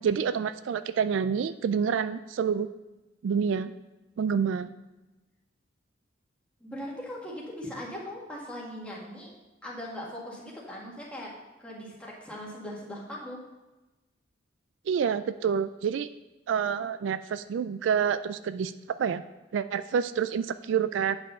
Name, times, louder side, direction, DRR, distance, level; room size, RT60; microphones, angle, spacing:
voice 1, 0.0-2.7 3.2-3.7 4.2-4.7 14.9-16.1 16.5-18.7 19.0-19.2 19.5-21.2, right 7 dB, 70° right, 13 dB, 0.3 m, -28 dB
voice 2, 6.6-9.3 9.6-11.3 11.6-13.4, equal, 5° left, -4 dB, 1.9 m, -40 dB
8.7 x 5.6 x 5.4 m, 1.1 s
head